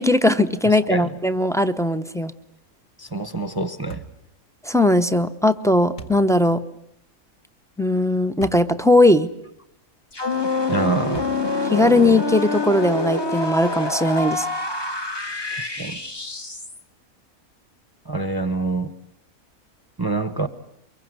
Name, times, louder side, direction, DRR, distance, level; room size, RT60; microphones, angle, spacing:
voice 1, 0.0-2.3 4.6-6.6 7.8-9.3 11.6-14.5, left 1 dB, 5° left, 0.7 m, -19 dB
voice 2, 0.7-1.1 3.0-4.0 10.7-11.2 15.5-16.0 18.0-18.9 20.0-20.5, right 3 dB, 15° right, 1.0 m, -26 dB
sound 1, 3.9-4.2 6.0-6.3 8.4-8.7 9.3-9.4 11.1-11.6, right 4 dB, 65° left, 2.4 m, -38 dB
sound 2, 10.1-16.8, left 3 dB, 20° left, 1.1 m, -26 dB
24.0 x 22.5 x 9.6 m
omnidirectional pair, 1.5 m